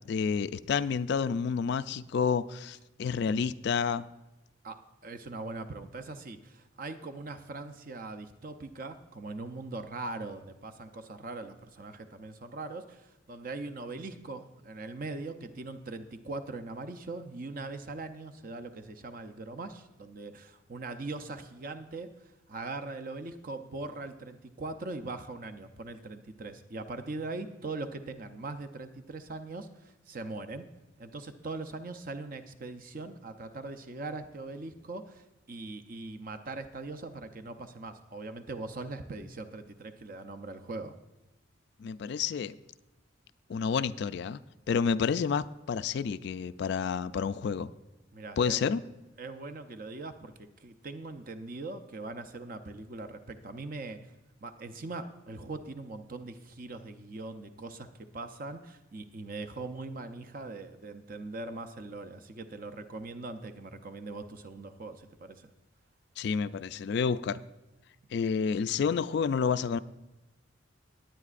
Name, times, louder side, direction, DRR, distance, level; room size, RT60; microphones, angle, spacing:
voice 1, 0.0-4.0 41.8-42.6 43.5-44.4 44.7-47.7 48.4-48.8 66.2-67.4 68.1-69.8, left 6 dB, 55° left, 14 dB, 0.3 m, -29 dB
voice 2, 4.6-22.1 22.5-30.7 31.0-40.9 48.1-48.7 49.2-54.0 54.4-65.5, right 3 dB, 45° right, 9 dB, 0.6 m, -41 dB
18.0 x 9.6 x 2.5 m, 1.0 s
head